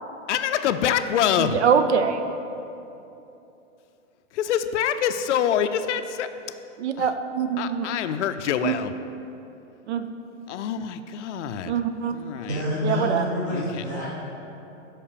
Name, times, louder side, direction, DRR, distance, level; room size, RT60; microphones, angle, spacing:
voice 1, 0.3-1.6 4.3-6.3 7.0-7.1 7.6-8.9 10.5-11.8 12.1-12.6 13.5-13.8, left 9 dB, 65° left, 9 dB, 0.5 m, -25 dB
voice 2, 1.4-2.2 6.8-7.9 8.6-8.7 9.9-10.0 11.7-12.1 12.8-13.2, right 7 dB, 60° right, 8 dB, 0.5 m, -23 dB
voice 3, 12.4-14.1, left 1 dB, 15° right, -8 dB, 0.6 m, -28 dB
5.7 x 5.0 x 6.5 m, 2.9 s
hypercardioid pair, 165°, 38 cm